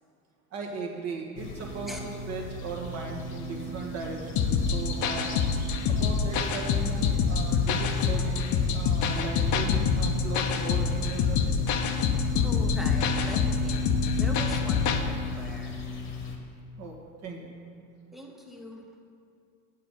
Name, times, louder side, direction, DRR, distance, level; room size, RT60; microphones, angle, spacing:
voice 1, 0.5-5.5 5.9-11.5 16.8-17.5, right 4 dB, 35° right, 0 dB, 1.7 m, -37 dB
sound 1, 1.4-16.4, left 4 dB, 25° left, 1.4 m, -34 dB
sound 2, 4.4-15.0, left 6 dB, 45° left, 0.8 m, -26 dB
voice 2, 12.3-15.9 18.1-18.8, equal, ahead, 0 dB, 0.9 m, -41 dB
9.2 x 7.5 x 5.3 m, 2.4 s
supercardioid pair, 130°, 44 cm